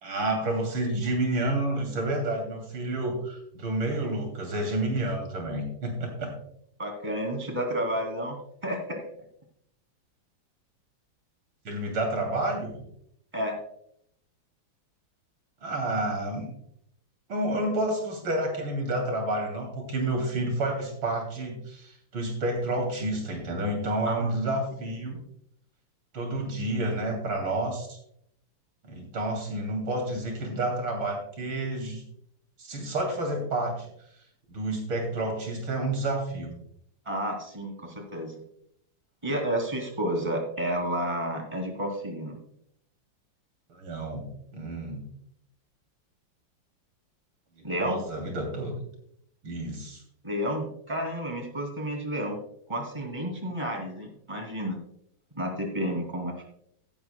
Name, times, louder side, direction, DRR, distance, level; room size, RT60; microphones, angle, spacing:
voice 1, 0.0-6.3 11.7-12.8 15.6-16.5 17.3-25.2 26.1-28.0 28.8-32.0 32.6-33.9 34.5-36.5 43.7-45.0 47.6-48.8 49.4-50.0, right 1 dB, 80° right, 2 dB, 3.6 m, -30 dB
voice 2, 6.8-9.0 13.3-13.6 24.1-24.3 37.1-38.3 39.2-42.4 47.6-48.0 50.2-52.4 52.7-54.8 55.3-56.4, equal, 15° right, 2 dB, 2.6 m, -31 dB
15.5 x 11.5 x 2.2 m, 0.72 s
omnidirectional pair, 2.1 m